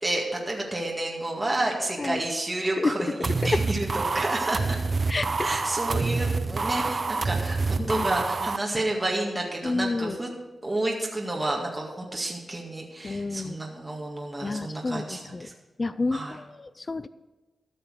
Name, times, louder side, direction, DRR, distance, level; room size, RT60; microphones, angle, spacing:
voice 1, 0.0-4.8 5.4-10.3 10.6-15.5 16.1-16.4, right 1 dB, 20° right, -1 dB, 1.9 m, -30 dB
sound 1, 3.2-8.6, right 4 dB, 45° right, 0.5 m, -27 dB
voice 2, 5.1-5.5 7.8-8.1 9.6-10.2 13.0-13.6 14.4-15.5 15.8-17.1, left 3 dB, 35° left, 14 dB, 0.4 m, -29 dB
13.0 x 6.6 x 6.4 m, 1.1 s
wide cardioid pair, 90°, 0 cm